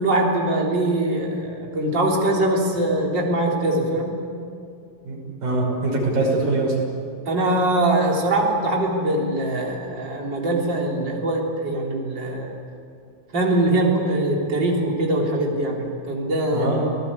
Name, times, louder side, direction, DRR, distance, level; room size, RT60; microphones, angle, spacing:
voice 1, 0.0-4.2 7.3-12.5 13.3-16.7, right 1 dB, 30° right, -1 dB, 4.0 m, -22 dB
voice 2, 5.0-6.8 16.5-16.9, right 2 dB, 80° right, -2 dB, 7.7 m, -23 dB
28.0 x 18.5 x 8.6 m, 2.3 s
omnidirectional pair, 4.0 m